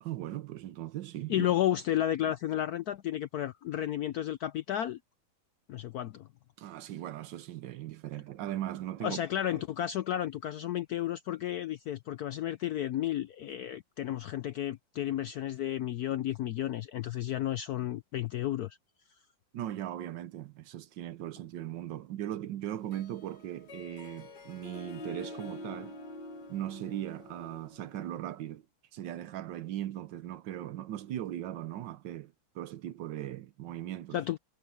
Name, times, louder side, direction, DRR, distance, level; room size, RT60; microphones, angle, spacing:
voice 1, 0.0-1.5 2.2-2.3 6.6-9.2 19.5-26.0 26.5-28.6 28.9-34.2, right 12 dB, 70° right, 1.3 m, -39 dB
voice 2, 1.3-5.0 5.7-6.3 9.0-18.8 34.1-34.4, left 12 dB, 75° left, 0.9 m, -32 dB
Harp, 22.8-28.3, left 2 dB, 55° left, 2.5 m, -46 dB
omnidirectional pair, 2.2 m